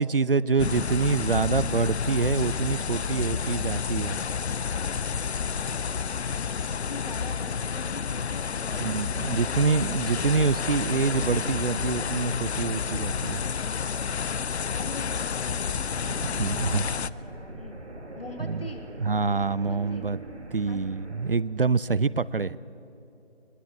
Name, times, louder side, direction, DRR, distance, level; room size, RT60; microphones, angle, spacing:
voice 1, 0.0-4.2 8.8-13.4 16.1-16.9 18.4-18.7 19.0-20.2 20.5-22.6, right 4 dB, 60° right, 20 dB, 0.5 m, -26 dB
sound 1, 0.6-17.1, left 6 dB, 85° left, 0.6 m, -30 dB
voice 2, 6.6-10.2 14.7-15.8 16.4-17.8 18.1-18.9 19.5-20.1 20.7-20.8 22.4-22.5, left 2 dB, 60° left, 3 dB, 3.1 m, -43 dB
sound 2, 15.5-21.4, right 1 dB, 85° right, 2.5 m, -42 dB
21.5 x 19.0 x 7.7 m, 2.9 s
figure-of-eight pair, 175°, 32 cm